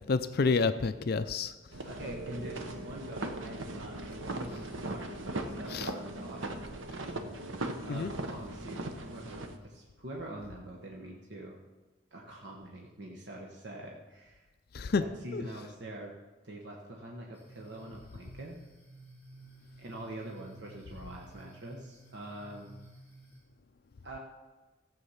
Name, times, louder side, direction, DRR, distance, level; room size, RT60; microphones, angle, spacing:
voice 1, 0.0-1.5 5.7-5.9 7.9-8.1 14.7-15.0 15.3-15.4, left 4 dB, 50° left, 11 dB, 0.4 m, -29 dB
sound 1, 1.7-9.6, right 2 dB, 80° right, 1.0 m, -39 dB
voice 2, 1.8-6.4 7.9-11.6 12.1-14.5 14.8-16.1 16.4-18.6 19.8-22.8 24.0-24.2, right 1 dB, 60° right, -1 dB, 1.2 m, -44 dB
sound 2, 17.3-23.4, right 2 dB, 10° left, 3.8 m, -54 dB
14.5 x 7.8 x 5.7 m, 1.3 s
head